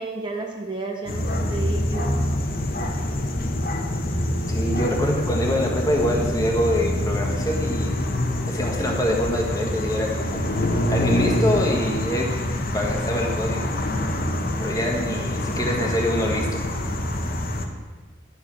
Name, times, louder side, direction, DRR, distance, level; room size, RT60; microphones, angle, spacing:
voice 1, 0.0-2.3, right 2 dB, 25° right, 2 dB, 0.8 m, -32 dB
sound 1, 1.1-17.7, left 1 dB, 50° left, 1.0 m, -25 dB
voice 2, 4.5-7.9 8.4-10.4 10.9-12.3 12.7-13.7 14.6-16.6, equal, 20° left, 0 dB, 1.5 m, -25 dB
11.0 x 6.4 x 6.2 m, 1.3 s
head